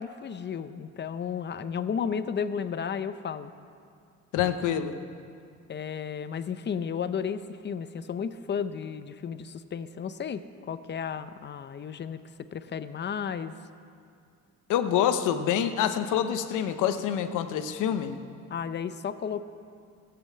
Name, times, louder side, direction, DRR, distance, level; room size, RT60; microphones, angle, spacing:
voice 1, 0.0-3.5 5.7-12.2 12.5-13.5 18.5-19.4, left 7 dB, 35° left, 12 dB, 0.6 m, -33 dB
voice 2, 4.3-4.9 14.7-18.2, left 9 dB, 90° left, 9 dB, 0.9 m, -26 dB
14.5 x 8.0 x 8.4 m, 2.4 s
cardioid pair, 110°, 30 cm